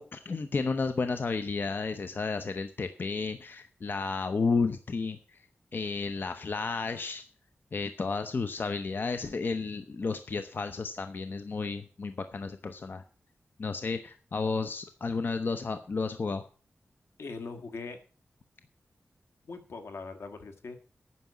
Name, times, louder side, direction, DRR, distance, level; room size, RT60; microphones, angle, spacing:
voice 1, 0.0-5.4 5.7-7.2 7.7-13.0 13.6-16.4, left 4 dB, 55° left, 9 dB, 0.8 m, -32 dB
voice 2, 17.2-18.0 19.5-20.8, left 4 dB, 80° left, 7 dB, 1.7 m, -41 dB
9.4 x 6.1 x 8.1 m, 0.40 s
wide cardioid pair, 95°, 4 cm